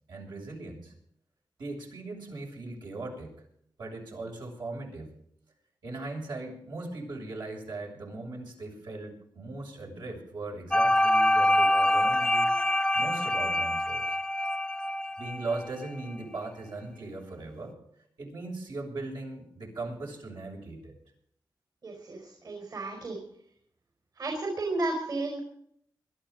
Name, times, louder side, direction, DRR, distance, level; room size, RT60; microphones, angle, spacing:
voice 1, 0.1-0.9 1.6-3.4 3.8-5.2 5.8-12.5 12.9-14.2 15.2-17.8 18.2-20.9, right 2 dB, 80° right, -2 dB, 6.7 m, -39 dB
sound 1, 10.7-15.8, left 1 dB, 10° left, 0.6 m, -25 dB
voice 2, 21.8-23.2 24.2-25.4, right 2 dB, 60° right, 2 dB, 4.4 m, -33 dB
22.5 x 12.5 x 3.9 m, 0.69 s
cardioid pair, 75°, 7 cm